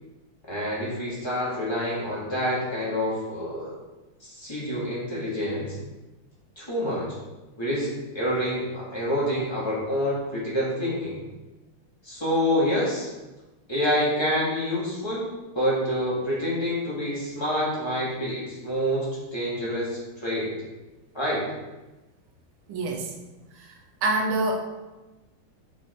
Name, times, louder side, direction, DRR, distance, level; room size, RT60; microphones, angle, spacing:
voice 1, 0.5-3.7 4.2-5.8 6.6-7.2 7.6-11.3 12.0-13.1 13.7-15.3 15.5-20.6 21.1-21.5, equal, 15° left, -7 dB, 1.9 m, -27 dB
voice 2, 22.7-23.1 23.6-24.6, right 2 dB, 75° right, 2 dB, 1.7 m, -27 dB
5.6 x 5.1 x 4.6 m, 1.1 s
omnidirectional pair, 2.3 m